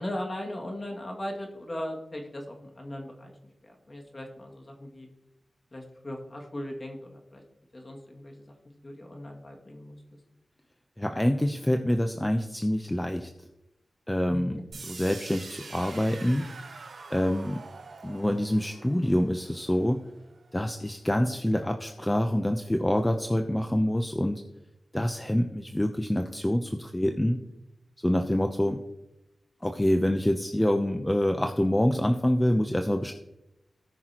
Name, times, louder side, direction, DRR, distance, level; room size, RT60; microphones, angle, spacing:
voice 1, 0.0-3.3 3.6-5.1 5.7-7.4 7.7-8.5 8.8-10.0 14.3-14.6, left 1 dB, 40° left, 1 dB, 2.3 m, -38 dB
voice 2, 11.0-13.3 14.1-14.6 14.9-16.4 17.1-17.6 18.0-20.0 20.5-24.4 24.9-27.4 28.0-28.8 29.6-33.1, left 1 dB, 15° left, 5 dB, 0.8 m, -26 dB
sound 1, 14.7-20.6, right 4 dB, 80° right, 3.0 m, -45 dB
18.0 x 6.0 x 3.0 m, 0.88 s
cardioid pair, 50°, 0 cm